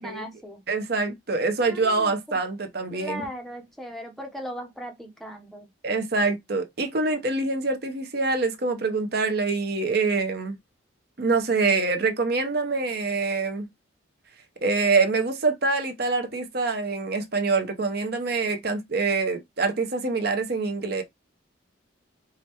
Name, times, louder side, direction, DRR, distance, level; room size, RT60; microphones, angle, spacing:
voice 1, 0.0-0.6 1.6-2.4 2.9-5.7, equal, ahead, 0.6 m, -38 dB
voice 2, 0.7-3.3 5.8-10.6 11.2-13.7 14.6-21.0, right 3 dB, 55° right, 0.8 m, -25 dB
4.8 x 2.2 x 2.8 m
head